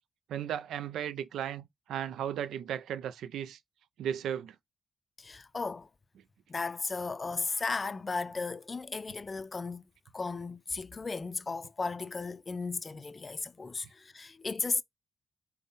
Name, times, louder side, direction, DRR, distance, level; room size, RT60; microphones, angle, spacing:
voice 1, 0.3-3.6 4.0-4.6, right 9 dB, 85° right, 0.3 m, -35 dB
voice 2, 5.2-5.9 6.5-9.9 10.1-14.8, left 4 dB, 35° left, 0.4 m, -35 dB
5.3 x 2.1 x 3.9 m
cardioid pair, 70°, 0 cm